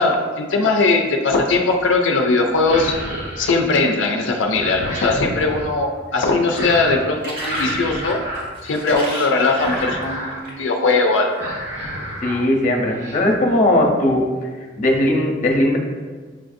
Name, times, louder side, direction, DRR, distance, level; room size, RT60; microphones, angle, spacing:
voice 1, 0.0-3.0 3.4-8.2 8.6-11.4, left 3 dB, 80° left, 2 dB, 0.4 m, -19 dB
Monster Saying Gibberish Words, 1.3-1.7 2.5-4.1 4.3-5.7 6.5-7.1 7.4-9.1 9.5-10.5 10.8-11.0 11.3-12.4 12.7-13.2, equal, 80° right, 1.3 m, -30 dB
sound 1, 6.1-10.7 11.5-11.7, right 1 dB, 60° right, 1.2 m, -34 dB
voice 2, 12.2-14.2 14.8-15.8, left 1 dB, 45° left, 0 dB, 0.7 m, -18 dB
7.4 x 2.5 x 2.5 m, 1.5 s
head